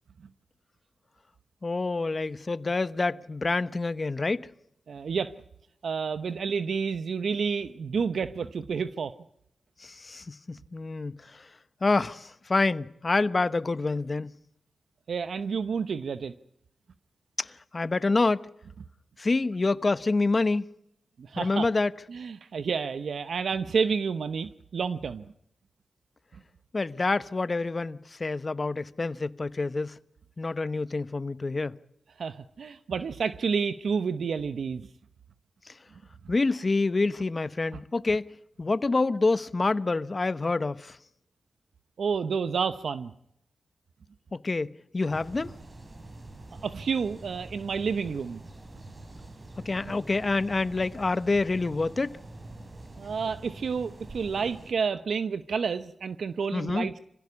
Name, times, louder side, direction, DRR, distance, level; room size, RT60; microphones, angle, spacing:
voice 1, 1.6-4.5 9.8-11.5 11.8-14.4 17.4-18.4 19.2-20.7 21.4-21.9 26.7-30.0 30.4-31.8 36.3-38.3 38.6-41.0 44.3-45.5 49.6-52.2 56.5-56.9, left 3 dB, 35° left, 0.9 m, -27 dB
voice 2, 4.9-5.3 5.8-9.1 15.1-16.3 21.2-21.7 22.1-25.2 32.2-34.9 42.0-43.1 46.6-48.4 53.0-56.9, right 5 dB, 75° right, 0.8 m, -30 dB
sound 1, 45.1-54.7, right 2 dB, 35° right, 3.9 m, -45 dB
25.5 x 16.0 x 9.7 m
cardioid pair, 80°, 0 cm